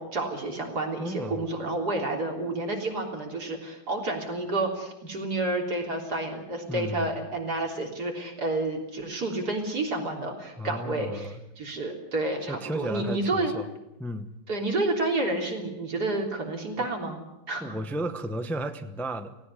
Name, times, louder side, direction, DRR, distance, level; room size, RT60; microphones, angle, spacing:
voice 1, 0.0-13.5 14.5-17.2 17.5-17.8, right 2 dB, 55° right, 1 dB, 4.1 m, -30 dB
voice 2, 1.0-1.5 6.7-7.1 10.6-11.4 12.5-13.7 14.0-14.3 16.8-16.9 17.6-19.4, equal, ahead, 8 dB, 0.5 m, -33 dB
18.0 x 17.0 x 9.7 m, 0.93 s
omnidirectional pair, 2.1 m